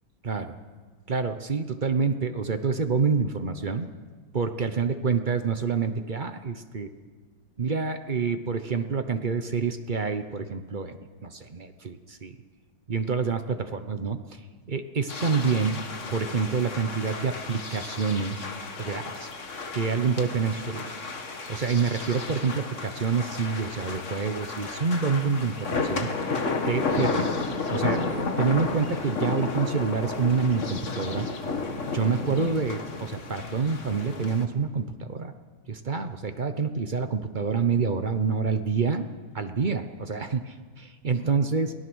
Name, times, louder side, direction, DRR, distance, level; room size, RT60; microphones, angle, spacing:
voice 1, 0.2-0.5 1.1-3.9 4.3-6.9 7.6-11.0 11.2-12.4 12.9-14.4 14.7-15.8 16.1-18.5 18.8-19.3 19.7-20.9 21.5-26.1 26.6-27.3 27.7-31.3 31.9-35.3 35.7-39.1 39.3-41.7, right 5 dB, 50° right, 8 dB, 0.5 m, -27 dB
sound 1, 15.1-34.4, left 3 dB, 40° left, 1.7 m, -32 dB
23.0 x 18.0 x 6.3 m, 1.4 s
omnidirectional pair, 2.3 m